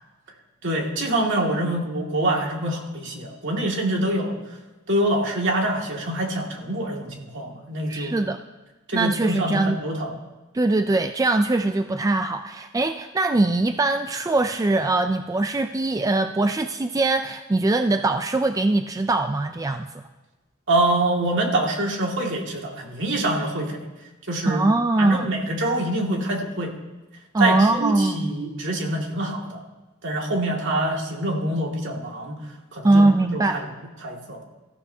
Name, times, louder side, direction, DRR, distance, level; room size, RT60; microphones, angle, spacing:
voice 1, 0.6-4.4 4.9-8.1 8.9-10.1 20.7-23.8 24.3-24.7 25.0-26.7 27.4-29.6 30.0-32.4 32.7-33.1 33.3-33.6 34.0-34.4, right 1 dB, 60° right, 0 dB, 2.1 m, -25 dB
voice 2, 7.9-8.4 8.9-9.8 10.5-20.0 24.5-25.3 27.3-28.3 32.8-33.6, right 2 dB, 15° right, 8 dB, 0.3 m, -22 dB
18.0 x 14.0 x 2.8 m, 1.1 s
head